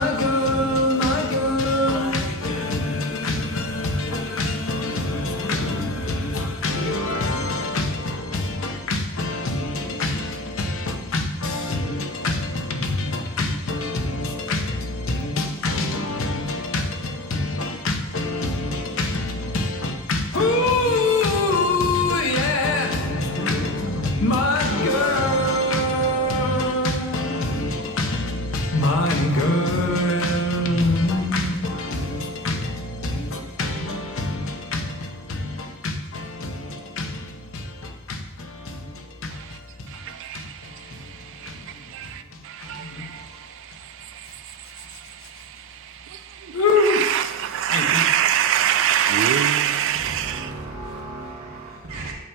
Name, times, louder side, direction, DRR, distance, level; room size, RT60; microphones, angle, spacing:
voice 1, 0.0-43.4 43.7-43.8 44.8-45.0 46.5-47.0 47.7-48.0, left 2 dB, 60° left, 0.8 m, -25 dB
voice 2, 39.9-50.7 51.9-52.1, right 10 dB, 60° right, 0.3 m, -26 dB
voice 3, 49.9-52.1, right 2 dB, 90° right, 1.0 m, -35 dB
8.3 x 6.8 x 2.3 m
head